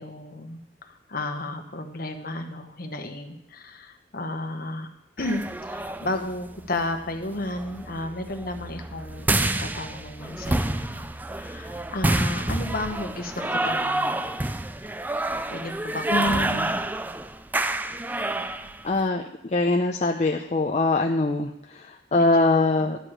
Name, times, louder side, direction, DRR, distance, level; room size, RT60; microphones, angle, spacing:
voice 1, 0.0-4.9 5.2-11.1 11.4-14.2 15.5-16.8 22.1-22.9, left 2 dB, 50° left, 5 dB, 1.2 m, -33 dB
sound 1, 5.2-19.0, right 2 dB, 10° right, 0.3 m, -28 dB
voice 2, 16.1-16.7 18.8-19.2 19.5-23.0, left 2 dB, 35° left, 2 dB, 0.6 m, -23 dB
12.5 x 4.9 x 8.9 m, 0.83 s
head